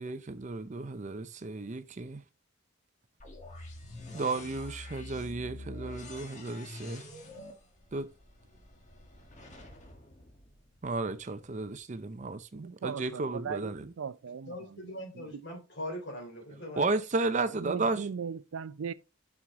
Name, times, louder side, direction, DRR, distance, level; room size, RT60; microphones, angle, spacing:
voice 1, 0.0-2.2 4.1-7.1 7.9-8.1 10.8-13.9 16.8-18.0, right 3 dB, 35° right, 0.5 m, -33 dB
sound 1, 3.2-11.1, left 1 dB, 35° left, 1.5 m, -47 dB
voice 2, 12.5-15.4 17.5-18.9, right 6 dB, 90° right, 0.5 m, -39 dB
voice 3, 14.5-16.9, left 1 dB, 60° left, 3.1 m, -41 dB
6.3 x 6.0 x 4.0 m
head